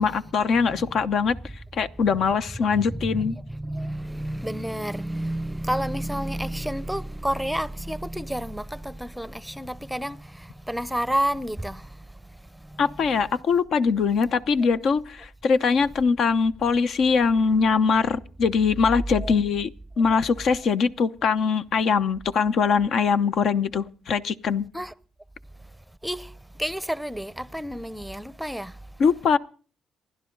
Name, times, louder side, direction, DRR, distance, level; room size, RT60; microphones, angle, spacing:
voice 1, 0.0-1.3 1.7-3.4 12.8-19.7 20.0-24.6 29.0-29.4, left 5 dB, 65° left, 0.8 m, -22 dB
voice 2, 2.9-12.8 19.2-19.3 24.7-24.9 26.0-28.9, right 1 dB, ahead, 0.7 m, -30 dB
27.5 x 11.5 x 3.9 m
cardioid pair, 90°, 0 cm